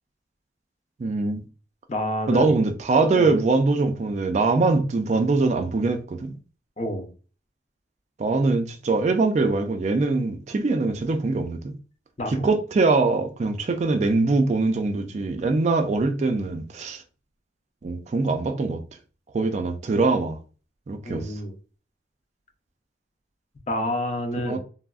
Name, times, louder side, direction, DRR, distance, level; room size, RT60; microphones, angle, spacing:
voice 1, 1.0-1.4 2.3-6.3 8.2-11.7 12.3-17.0 17.8-18.8 19.3-20.4 20.9-21.3 24.4-24.6, right 3 dB, 40° right, 0.3 m, -23 dB
voice 2, 1.9-2.5 3.2-3.3 6.8-7.1 12.2-12.5 21.0-21.5 23.7-24.6, left 1 dB, 35° left, 0.5 m, -28 dB
3.3 x 2.0 x 2.3 m
head